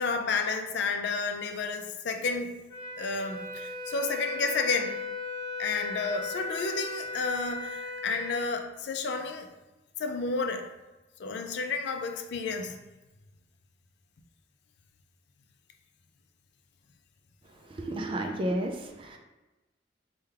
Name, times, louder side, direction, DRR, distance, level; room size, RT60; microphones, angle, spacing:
voice 1, 0.0-2.5 3.0-5.0 5.6-9.5 10.0-10.6 11.2-12.8, left 4 dB, 65° left, 5 dB, 0.4 m, -31 dB
Wind instrument woodwind instrument, 2.7-8.4, left 3 dB, 15° left, 1.1 m, -37 dB
voice 2, 17.7-19.2, right 1 dB, 30° right, 2 dB, 0.3 m, -32 dB
3.3 x 2.2 x 3.3 m, 1.1 s
head